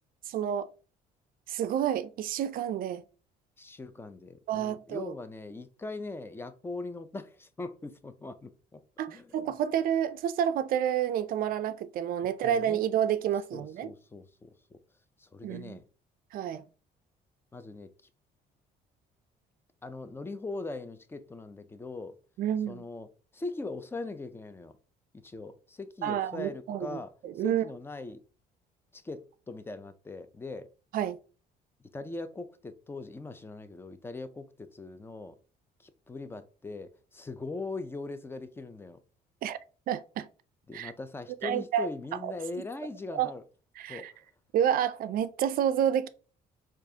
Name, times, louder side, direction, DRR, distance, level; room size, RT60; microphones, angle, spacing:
voice 1, 0.3-0.7 1.5-3.0 4.5-5.1 9.0-13.9 15.4-15.8 16.3-16.6 22.4-22.8 26.0-27.0 27.2-27.6 30.9-31.2 39.4-39.6 39.9-40.3 40.7-40.9 41.4-41.9 42.2-42.3 43.1-43.3 43.8-44.1 44.5-46.1, right 9 dB, 60° right, 0.4 m, -29 dB
voice 2, 3.6-8.8 9.1-9.5 12.4-12.8 13.5-14.8 15.2-15.9 17.5-17.9 19.8-22.1 22.7-23.1 23.3-24.8 25.2-28.2 28.9-30.7 31.9-35.4 35.8-39.0 40.7-43.4 43.9-44.1, left 3 dB, 15° left, 0.4 m, -40 dB
4.6 x 2.4 x 2.7 m
cardioid pair, 110°, 17 cm